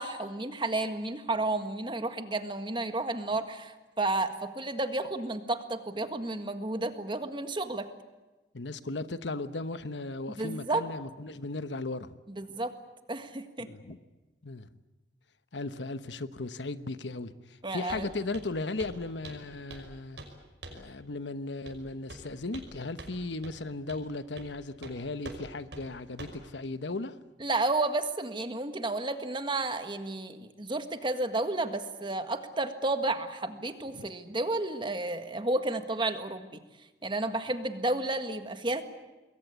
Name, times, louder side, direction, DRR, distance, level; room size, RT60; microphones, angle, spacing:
voice 1, 0.0-7.9 10.4-10.8 12.4-12.7 13.1-13.7 17.6-18.1 27.4-36.6 37.0-38.8, right 2 dB, 25° right, 1.7 m, -31 dB
voice 2, 8.5-12.2 13.6-14.0 14.4-14.7 15.5-20.2 20.7-27.2 33.9-34.1, left 2 dB, 85° left, 1.1 m, -36 dB
Walk footsteps, 17.9-18.1 18.3-18.5 18.8-19.0 19.2-19.9 20.2-20.3 20.6-20.9 21.7-21.8 22.1-22.7 23.0-23.1 23.4-23.5 23.9-24.0 24.4-24.5 24.8-24.9 25.2-25.4 25.7-25.8 26.2-26.4, right 2 dB, 80° right, 5.7 m, -44 dB
27.0 x 22.0 x 8.3 m
head